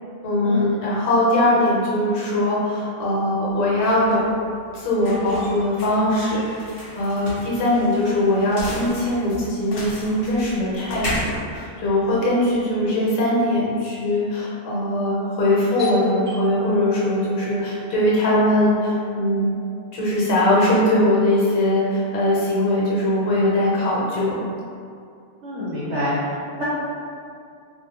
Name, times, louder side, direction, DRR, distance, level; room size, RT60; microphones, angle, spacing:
voice 1, 0.2-4.2 4.7-6.4 6.9-19.5 19.9-24.4, left 1 dB, 70° left, -7 dB, 1.0 m, -21 dB
sound 1, 3.5-12.6, left 1 dB, 55° left, 0.7 m, -35 dB
Doorbell, 15.8-21.2, left 2 dB, 35° right, 0.8 m, -36 dB
voice 2, 25.4-26.6, left 1 dB, 65° right, -10 dB, 0.8 m, -26 dB
2.3 x 2.1 x 2.8 m, 2.4 s
omnidirectional pair, 1.4 m